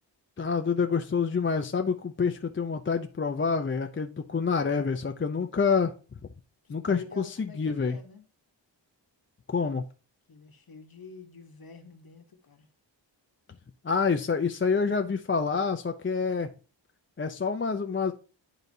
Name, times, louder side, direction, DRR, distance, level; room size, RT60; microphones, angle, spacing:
voice 1, 0.4-5.9 6.7-8.0 9.5-9.9 13.8-16.5 17.2-18.1, left 5 dB, 25° left, 0.5 m, -27 dB
voice 2, 6.6-8.2 10.3-12.7, left 5 dB, 50° left, 1.1 m, -47 dB
11.0 x 4.0 x 2.7 m
wide cardioid pair, 80°, 46 cm